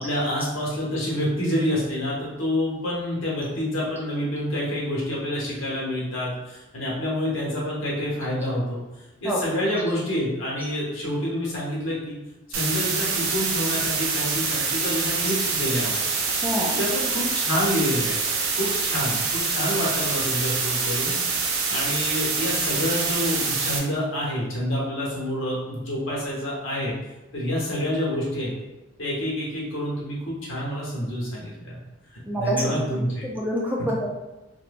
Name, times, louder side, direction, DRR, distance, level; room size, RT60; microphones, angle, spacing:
voice 1, 0.0-8.8 9.2-12.2 12.5-16.4 16.8-18.2 18.6-21.2 21.7-26.9 27.3-28.5 29.0-31.8 32.3-33.3, equal, 75° left, -5 dB, 1.0 m, -28 dB
sound 1, 12.5-23.8, right 4 dB, 85° right, 0.5 m, -25 dB
voice 2, 16.4-16.8 32.3-32.7 33.2-34.1, equal, 10° right, -3 dB, 0.5 m, -26 dB
2.9 x 2.1 x 2.6 m, 1.0 s
head